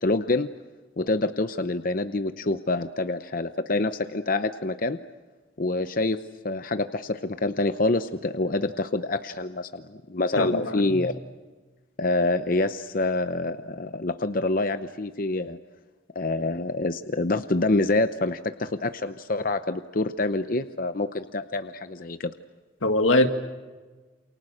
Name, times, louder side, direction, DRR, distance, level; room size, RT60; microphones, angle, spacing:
voice 1, 0.0-0.5 1.0-5.0 5.6-11.1 12.0-15.6 16.1-22.3, left 2 dB, 45° left, 0.8 m, -26 dB
voice 2, 10.4-11.0 22.8-23.3, left 1 dB, 85° left, 2.0 m, -22 dB
29.0 x 28.0 x 6.5 m
head